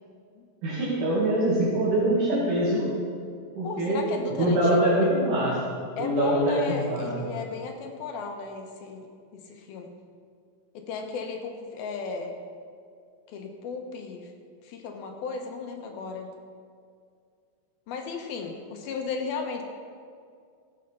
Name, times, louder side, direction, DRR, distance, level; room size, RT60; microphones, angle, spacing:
voice 1, 0.6-2.9 3.6-4.0 4.4-5.6 6.0-7.2, right 1 dB, 60° right, -7 dB, 3.4 m, -24 dB
voice 2, 3.6-4.7 6.0-9.1 9.3-9.9 10.7-12.4 13.3-14.3 14.6-16.3 17.9-19.6, left 4 dB, 80° left, 3 dB, 2.9 m, -35 dB
15.5 x 7.9 x 5.6 m, 2.2 s
omnidirectional pair, 4.3 m